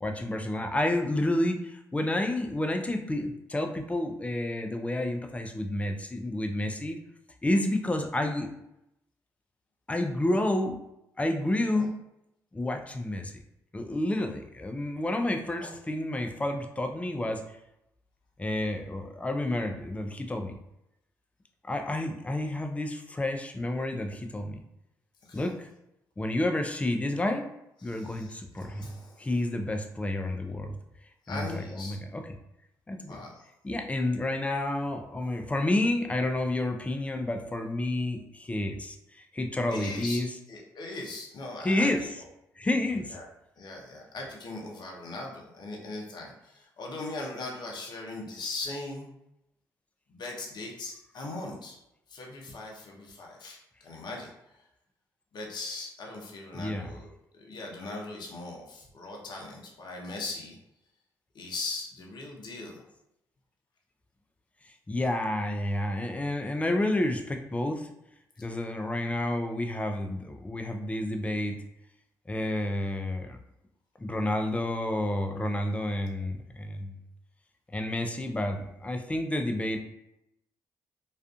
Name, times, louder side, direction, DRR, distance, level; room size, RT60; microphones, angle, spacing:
voice 1, 0.0-7.0 7.4-8.5 9.9-10.8 11.2-11.9 12.5-13.4 13.7-17.5 18.4-20.6 21.7-24.6 25.3-25.7 26.2-27.5 27.8-30.8 31.3-32.2 32.9-33.2 33.6-39.0 39.3-40.3 41.6-42.0 42.6-43.2 56.5-56.9 64.9-67.9 68.4-71.6 72.3-73.4 74.0-76.9 77.7-79.8, left 1 dB, 15° left, 5 dB, 0.4 m, -30 dB
voice 2, 27.8-29.3 31.2-32.0 33.1-33.5 39.7-40.2 40.5-41.9 43.1-43.2 43.6-49.1 50.1-51.8 52.1-54.6 55.3-57.1 57.3-60.6 61.3-62.8, left 2 dB, 55° left, -1 dB, 0.7 m, -39 dB
2.4 x 2.4 x 2.3 m, 0.84 s
hypercardioid pair, 50°, 9 cm